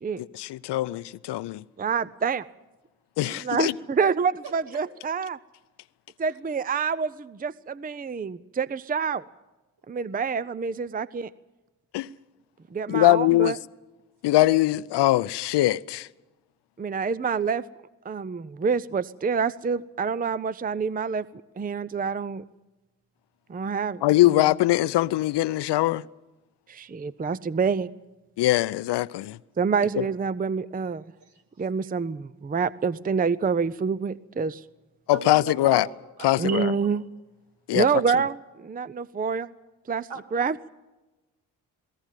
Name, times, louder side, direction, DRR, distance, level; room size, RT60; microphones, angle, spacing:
voice 1, 0.2-1.6 3.2-3.7 11.9-12.1 12.9-13.5 14.2-16.1 24.0-26.0 28.4-29.4 30.0-30.1 35.1-35.9 36.2-36.7 37.7-37.9, left 16 dB, 70° left, 0.6 m, -22 dB
voice 2, 1.8-2.5 3.3-5.4 6.2-9.2 9.9-11.3 12.7-13.6 16.8-17.6 18.0-21.3 21.6-22.4 23.5-24.4 26.7-27.9 29.6-31.0 31.6-34.6 36.4-37.0 37.7-39.5 39.9-40.6, right 5 dB, 20° right, 0.6 m, -27 dB
voice 3, 35.1-37.0 40.1-40.2, right 4 dB, 70° right, 2.4 m, -38 dB
20.5 x 18.0 x 7.5 m
hypercardioid pair, 45°, 43 cm